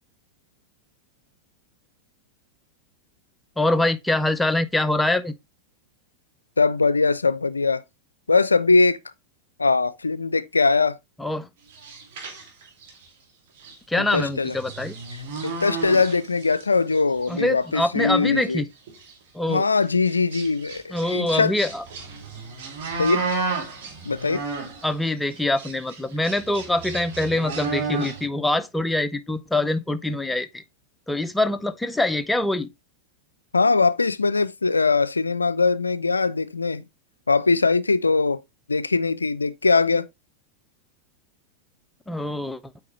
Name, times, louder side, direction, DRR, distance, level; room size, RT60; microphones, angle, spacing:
voice 1, 3.6-5.3 11.2-11.5 13.9-15.0 17.3-18.7 19.3-19.6 20.9-21.8 24.8-30.6 31.1-32.7 42.1-42.6, left 2 dB, 5° left, 0.5 m, -24 dB
voice 2, 6.6-7.8 8.3-9.0 9.6-11.0 13.9-14.6 15.4-18.6 19.5-21.5 23.0-23.2 24.1-24.4 33.5-36.8 37.3-38.4 38.7-40.1, left 4 dB, 80° left, 0.3 m, -21 dB
sound 1, 11.7-13.0 13.6-13.7 14.1-16.6 16.9-17.4 18.0-18.1 18.5-18.6 18.9-19.1 19.8-24.9 25.3-28.2, right 4 dB, 50° right, 2.4 m, -33 dB
8.3 x 4.7 x 3.1 m
figure-of-eight pair, 90°, 0 cm